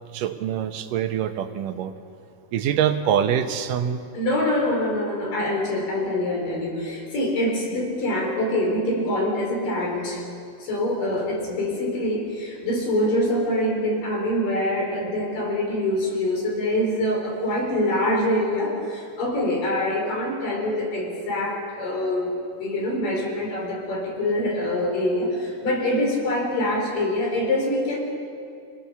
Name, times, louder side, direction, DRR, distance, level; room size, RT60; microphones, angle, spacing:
voice 1, 0.1-1.9 2.5-4.0, right 9 dB, 85° right, 8 dB, 2.7 m, -24 dB
voice 2, 4.1-10.3 10.6-22.3 22.6-28.0, left 1 dB, 85° left, 0 dB, 6.3 m, -25 dB
27.5 x 20.5 x 7.0 m, 2.4 s
omnidirectional pair, 3.7 m